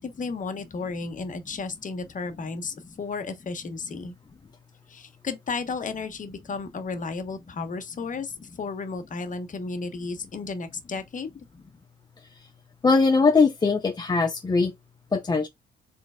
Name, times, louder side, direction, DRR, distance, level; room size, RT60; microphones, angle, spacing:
voice 1, 0.0-4.1 4.9-8.3 8.6-11.3, left 4 dB, 40° left, 1.0 m, -33 dB
voice 2, 12.8-14.7 15.1-15.5, left 4 dB, 20° left, 0.5 m, -21 dB
3.7 x 3.1 x 3.6 m
cardioid pair, 90°, 20 cm